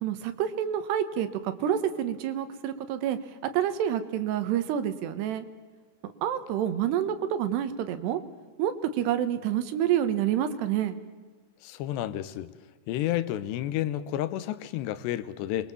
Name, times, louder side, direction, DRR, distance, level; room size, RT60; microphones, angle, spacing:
voice 1, 0.0-3.2 3.5-5.4 6.2-8.2 8.6-11.0, right 10 dB, 80° right, 10 dB, 3.4 m, -28 dB
voice 2, 11.6-12.5 12.9-15.7, left 13 dB, 85° left, 14 dB, 3.1 m, -31 dB
26.0 x 22.0 x 7.0 m, 1.4 s
omnidirectional pair, 4.8 m